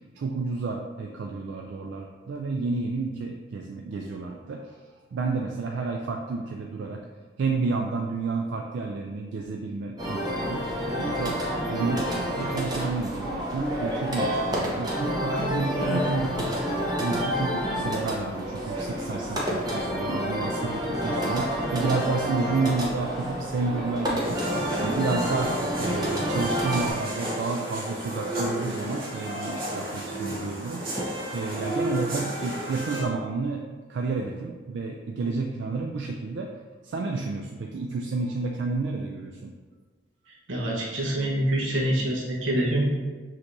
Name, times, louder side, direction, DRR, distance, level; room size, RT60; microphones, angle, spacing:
voice 1, 0.2-4.8 5.1-7.0 7.4-10.7 11.0-16.6 17.0-31.1 31.3-33.6 33.9-36.5 36.8-39.5, right 4 dB, 65° right, 1 dB, 0.3 m, -30 dB
sound 1, 10.0-26.9, equal, 20° right, 0.7 m, -29 dB
sound 2, 24.2-33.1, right 1 dB, 45° right, 1.1 m, -33 dB
voice 2, 40.5-42.9, right 1 dB, 85° right, -3 dB, 1.1 m, -25 dB
6.3 x 3.0 x 2.6 m, 1.4 s
head